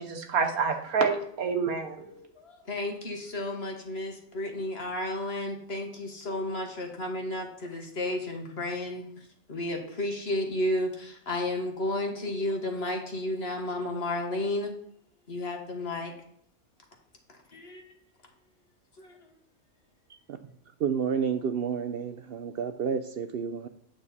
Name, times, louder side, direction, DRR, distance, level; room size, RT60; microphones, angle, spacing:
voice 1, 0.0-2.1, right 5 dB, 85° right, 4 dB, 1.6 m, -28 dB
voice 2, 2.0-9.0 9.5-14.7 15.3-16.1 17.5-17.8 19.0-19.2, left 1 dB, 45° left, 3 dB, 1.5 m, -32 dB
voice 3, 20.8-23.7, right 6 dB, 65° right, 9 dB, 0.6 m, -30 dB
8.7 x 6.4 x 4.2 m, 0.67 s
omnidirectional pair, 1.5 m